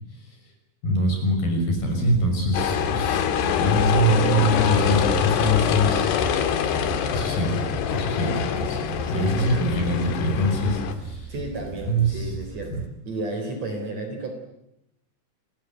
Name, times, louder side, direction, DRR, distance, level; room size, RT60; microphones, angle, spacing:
voice 1, 0.8-3.2 3.6-6.1 7.1-7.6 7.9-8.8 9.1-11.3 11.9-12.3 12.7-12.8, equal, 60° left, 4 dB, 7.6 m, -23 dB
sound 1, 1.7-12.9, right 6 dB, 75° right, 5.2 m, -38 dB
sound 2, 2.5-10.9, left 8 dB, 75° left, 3.7 m, -25 dB
voice 2, 9.0-9.6 11.3-12.8 13.0-14.3, right 2 dB, 40° right, 5 dB, 4.9 m, -32 dB
27.5 x 19.0 x 9.5 m, 0.84 s
omnidirectional pair, 4.8 m